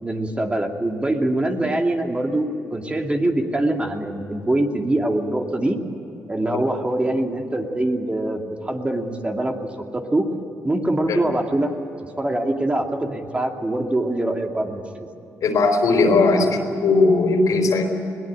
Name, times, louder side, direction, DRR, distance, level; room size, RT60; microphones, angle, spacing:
voice 1, 0.0-2.5 2.7-5.8 6.3-9.5 9.9-10.2 10.6-11.7 12.2-14.8, right 1 dB, 20° right, 2 dB, 2.7 m, -23 dB
voice 2, 15.4-17.9, left 3 dB, 75° left, 4 dB, 4.2 m, -18 dB
21.5 x 19.0 x 8.9 m, 3.0 s
cardioid pair, 75°, 6 cm